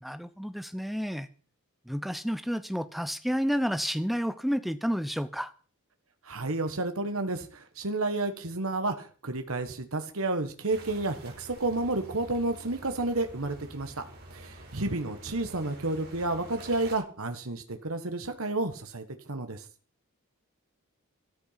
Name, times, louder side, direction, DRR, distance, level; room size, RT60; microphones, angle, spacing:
voice 1, 0.0-1.3 1.9-5.5, equal, ahead, 11 dB, 0.8 m, -30 dB
voice 2, 6.3-14.0 14.3-19.6, right 2 dB, 70° right, 7 dB, 1.5 m, -31 dB
sound 1, 10.7-17.0, right 1 dB, 45° right, 4.2 m, -48 dB
13.5 x 13.0 x 5.8 m, 0.40 s
head